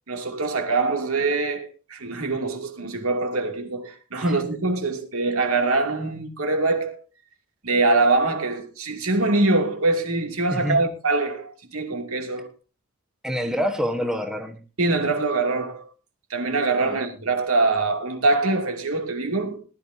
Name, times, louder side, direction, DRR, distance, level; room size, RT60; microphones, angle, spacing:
voice 1, 0.1-7.0 7.6-12.5 14.8-15.9 16.3-19.6, right 3 dB, 75° right, 2.6 m, -23 dB
voice 2, 13.2-14.6 16.8-17.0, equal, 5° right, 1.3 m, -27 dB
20.0 x 11.5 x 2.8 m
head